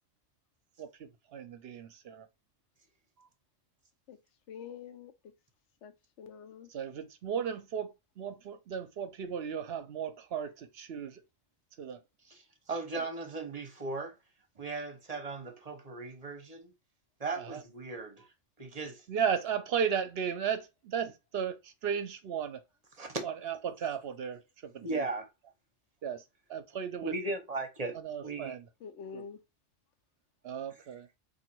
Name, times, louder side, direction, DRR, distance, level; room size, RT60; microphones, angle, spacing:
voice 1, 0.8-2.3 6.7-7.9 8.2-11.2 11.8-12.0 13.0-13.1 17.4-17.6 19.1-22.6 23.2-24.4 24.7-25.1 26.0-26.2 26.5-27.1 28.0-28.6 29.1-29.2 30.4-31.1, right 7 dB, 65° right, 0.8 m, -35 dB
voice 2, 4.5-5.3 5.8-6.7 28.8-29.4, left 7 dB, 80° left, 1.0 m, -46 dB
voice 3, 12.7-14.1 14.6-16.7 17.2-18.2 18.6-19.0 23.0-23.5 24.8-25.3 27.0-28.0 28.2-28.6 30.7-30.8, right 3 dB, 35° right, 0.9 m, -37 dB
3.8 x 2.7 x 4.4 m
omnidirectional pair, 1.2 m